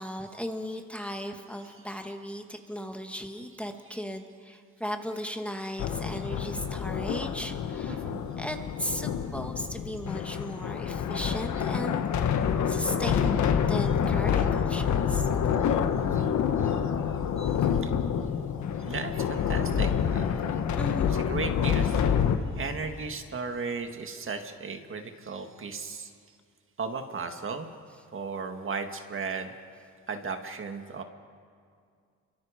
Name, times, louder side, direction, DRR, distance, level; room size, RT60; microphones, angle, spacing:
voice 1, 0.0-12.0 12.7-15.3 17.4-17.6 20.8-21.1, equal, 5° left, 4 dB, 1.8 m, -36 dB
voice 2, 1.6-2.0 3.9-4.0 6.1-6.3 7.9-8.2 13.9-14.0 14.4-14.5 15.6-16.4 16.6-16.8 18.8-20.4 21.0-22.1 22.5-26.1 26.8-27.7 28.1-29.5 30.1-31.0, right 4 dB, 45° right, 5 dB, 2.0 m, -36 dB
sound 1, 5.8-22.4, left 8 dB, 70° left, 1.5 m, -27 dB
30.0 x 23.5 x 5.2 m, 2.2 s
cardioid pair, 90°, 30 cm